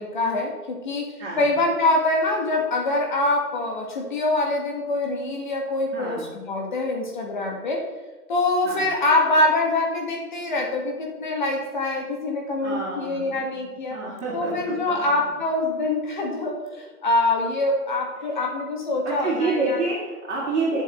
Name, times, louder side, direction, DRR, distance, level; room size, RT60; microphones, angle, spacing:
voice 1, 0.0-7.8 8.3-14.0 14.3-19.8, left 2 dB, 30° left, 1 dB, 1.5 m, -24 dB
voice 2, 1.2-1.5 5.9-6.3 8.6-8.9 12.6-14.9 19.0-20.8, right 3 dB, 45° right, -5 dB, 2.9 m, -28 dB
10.0 x 7.4 x 4.2 m, 1.2 s
hypercardioid pair, 165°, 48 cm